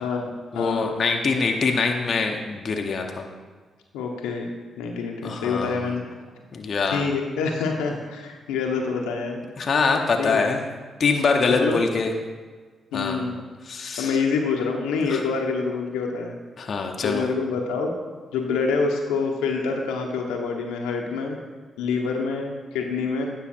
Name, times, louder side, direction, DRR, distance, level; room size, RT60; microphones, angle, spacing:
voice 1, 0.0-0.8 3.9-6.0 6.9-9.4 10.2-10.5 11.5-11.8 12.9-13.4 14.0-16.4 16.7-16.8 17.0-17.9 18.3-21.4 21.8-23.3, left 4 dB, 90° left, 1 dB, 0.9 m, -26 dB
voice 2, 0.5-3.2 5.2-5.9 6.5-7.1 9.6-10.6 11.0-12.1 12.9-13.2 13.7-14.2 15.1-15.2 16.6-17.3, left 4 dB, 55° left, 3 dB, 0.9 m, -24 dB
9.9 x 5.6 x 4.4 m, 1.4 s
supercardioid pair, 50°, 0 cm